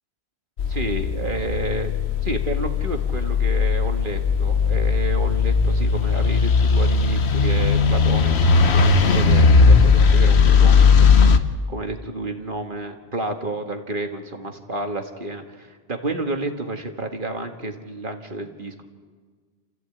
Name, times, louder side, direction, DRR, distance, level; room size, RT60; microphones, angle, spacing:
sound 1, 0.6-11.4, left 5 dB, 70° left, 1.3 m, -17 dB
voice 1, 0.7-1.9 2.2-8.4 8.7-11.1 11.7-18.8, right 2 dB, 50° right, 5 dB, 1.8 m, -30 dB
28.0 x 14.5 x 8.8 m, 1.5 s
omnidirectional pair, 1.2 m